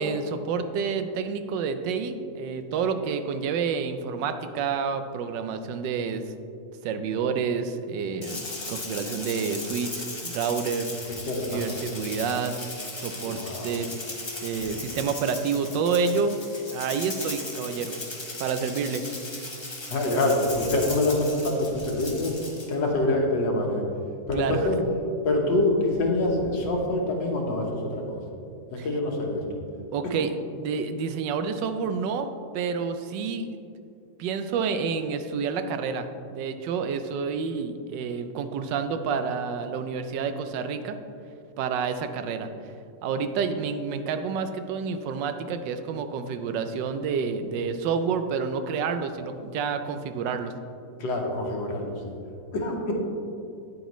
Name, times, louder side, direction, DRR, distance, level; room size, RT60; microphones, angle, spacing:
voice 1, 0.0-6.2 6.8-10.9 11.5-12.6 13.0-13.9 14.4-16.4 16.7-17.9 18.4-19.0 24.3-24.6 28.8-28.9 29.9-30.3 30.6-33.5 34.2-36.1 36.3-41.0 41.6-42.5 43.0-50.5, right 5 dB, 85° right, 9 dB, 1.3 m, -29 dB
Rattle (instrument), 8.2-22.7, left 2 dB, 20° left, 0.7 m, -37 dB
voice 2, 11.1-11.7 13.2-13.8 14.6-14.7 19.9-22.3 22.7-23.8 24.3-24.8 25.2-28.2 28.7-29.4 30.1-30.2 51.0-52.2 52.5-52.9, left 2 dB, 85° left, 1 dB, 1.8 m, -26 dB
8.7 x 8.0 x 3.1 m, 2.5 s
omnidirectional pair, 1.9 m